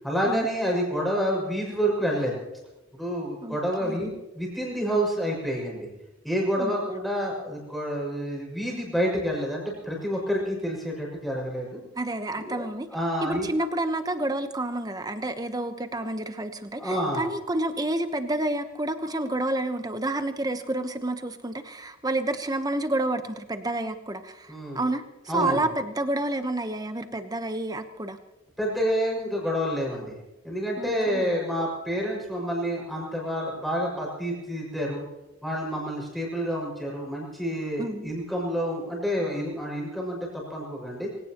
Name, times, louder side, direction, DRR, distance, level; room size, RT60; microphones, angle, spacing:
voice 1, 0.0-2.4 3.0-5.9 6.2-11.8 12.4-13.5 16.8-17.2 24.5-24.8 25.3-25.6 28.6-30.2 30.4-35.0 35.4-41.1, equal, ahead, -3 dB, 6.0 m, -28 dB
voice 2, 3.4-4.0 6.6-6.7 11.9-12.9 13.2-25.0 25.3-28.2 30.8-31.3 37.8-38.1, right 1 dB, 20° right, 8 dB, 1.0 m, -29 dB
25.0 x 17.5 x 3.0 m, 1.0 s
head